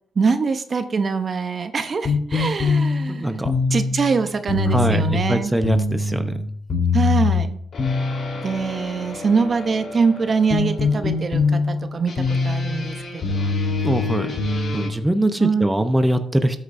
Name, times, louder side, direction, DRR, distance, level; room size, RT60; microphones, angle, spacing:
voice 1, 0.2-3.4 3.7-5.5 6.9-7.6 8.4-13.5 15.4-15.7, right 5 dB, 40° right, 9 dB, 0.8 m, -23 dB
sound 1, 2.0-14.9, left 4 dB, 50° left, 3.8 m, -23 dB
voice 2, 3.1-3.5 4.7-6.4 13.8-14.4 14.7-16.6, right 1 dB, 5° right, 8 dB, 0.8 m, -22 dB
13.0 x 8.2 x 2.7 m, 0.65 s
cardioid pair, 90°, 0 cm